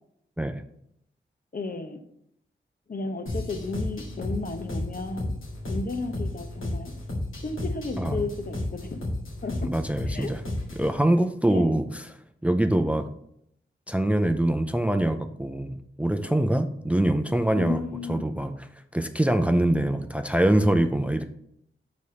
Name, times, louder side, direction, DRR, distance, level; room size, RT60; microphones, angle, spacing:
voice 1, 1.5-2.0 2.9-5.3 5.7-6.9 7.4-9.0 9.4-9.7 10.1-10.3 11.5-11.8 17.5-18.2, left 3 dB, 45° left, 7 dB, 0.9 m, -33 dB
sound 1, 3.3-10.9, left 1 dB, 80° left, 1.8 m, -33 dB
voice 2, 9.6-10.4 10.8-12.2 12.4-13.1 13.9-17.8 18.1-18.7 18.9-21.2, right 1 dB, 5° right, 8 dB, 0.5 m, -24 dB
4.8 x 4.2 x 5.6 m, 0.73 s
cardioid pair, 45°, 21 cm